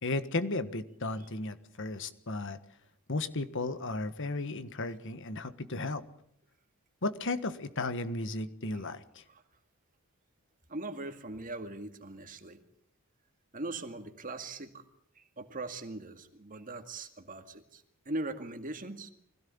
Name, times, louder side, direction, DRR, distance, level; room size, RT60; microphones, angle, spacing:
voice 1, 0.0-2.6 3.1-6.0 7.0-9.2, left 2 dB, 55° left, 11 dB, 1.5 m, -34 dB
voice 2, 10.7-12.6 13.5-14.8 15.2-19.1, right 2 dB, 40° right, 7 dB, 2.1 m, -40 dB
23.5 x 17.0 x 8.8 m, 0.67 s
head